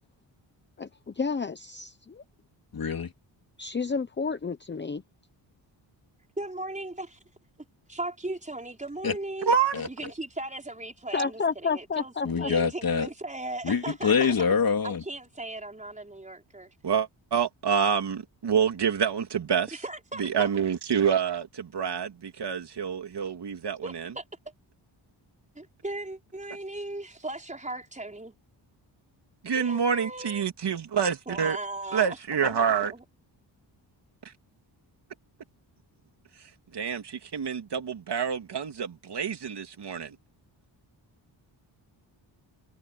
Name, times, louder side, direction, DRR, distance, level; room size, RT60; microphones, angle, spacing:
voice 1, 0.8-2.2 3.6-5.0 11.1-12.5, left 5 dB, 25° left, 0.9 m, -30 dB
voice 2, 2.7-3.1 9.0-9.1 9.7-9.9 12.2-13.1 13.6-15.0, left 6 dB, 50° left, 3.7 m, -25 dB
voice 3, 6.4-7.2 7.9-9.5 9.9-14.5 14.8-16.7 19.7-20.5 23.8-24.2 25.5-28.3 29.6-30.5 31.3-33.0, right 2 dB, 15° right, 4.9 m, -37 dB
voice 4, 9.5-9.9 16.8-19.8 20.2-24.1 29.4-31.6 31.9-32.9 36.7-40.1, right 7 dB, 60° right, 3.1 m, -27 dB
cardioid pair, 105°, 46 cm